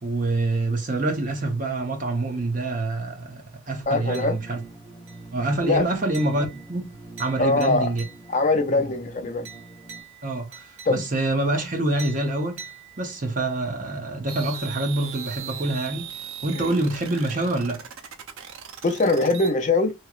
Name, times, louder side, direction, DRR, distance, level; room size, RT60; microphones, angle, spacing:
voice 1, 0.0-4.6 5.3-8.0 8.7-8.9 10.2-12.6 13.0-16.1 16.4-17.8, right 2 dB, 40° right, 0.8 m, -26 dB
voice 2, 3.9-4.4 5.6-5.8 7.4-7.9 8.3-9.5 10.9-11.1 16.6-16.7 18.8-19.9, left 3 dB, 35° left, 0.4 m, -22 dB
sound 1, 3.9-10.0, right 2 dB, 15° right, 1.1 m, -44 dB
sound 2, 4.1-4.7 5.1-5.5 6.1-8.6 9.4-11.4 12.0-13.4, right 6 dB, 65° right, 1.0 m, -45 dB
sound 3, 14.3-19.5, right 8 dB, 85° right, 0.6 m, -38 dB
3.1 x 2.8 x 2.4 m
head